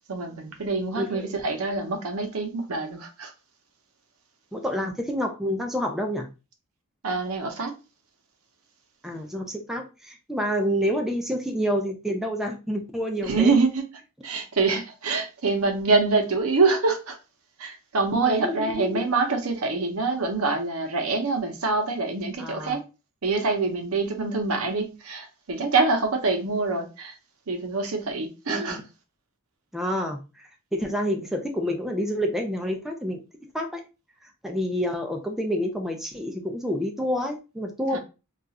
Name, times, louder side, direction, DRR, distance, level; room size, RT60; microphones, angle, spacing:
voice 1, 0.1-3.3 7.0-7.7 13.3-13.8 14.2-17.2 17.6-22.8 23.2-27.1 27.5-28.8 37.9-38.0, right 3 dB, 70° right, 0.7 m, -25 dB
voice 2, 1.0-1.3 4.5-6.3 9.0-13.5 18.3-19.0 22.4-22.8 28.5-28.8 29.7-33.2 33.5-33.8 34.2-38.0, equal, ahead, 0.3 m, -28 dB
2.4 x 2.3 x 4.0 m
head